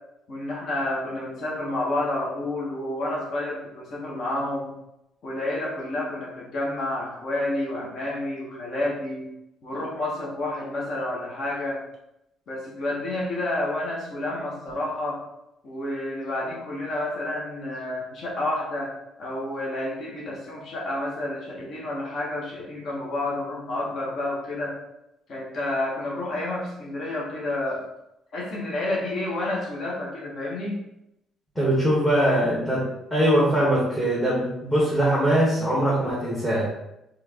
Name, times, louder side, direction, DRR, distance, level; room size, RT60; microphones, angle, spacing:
voice 1, 0.3-4.7 5.2-9.3 9.6-11.8 12.5-15.2 15.6-18.9 19.2-24.8 25.3-27.8 28.3-30.8, left 1 dB, 40° left, -4 dB, 1.2 m, -29 dB
voice 2, 31.5-36.7, right 1 dB, 5° left, -8 dB, 1.2 m, -22 dB
4.3 x 3.1 x 3.7 m, 0.85 s
cardioid pair, 180°, 0 cm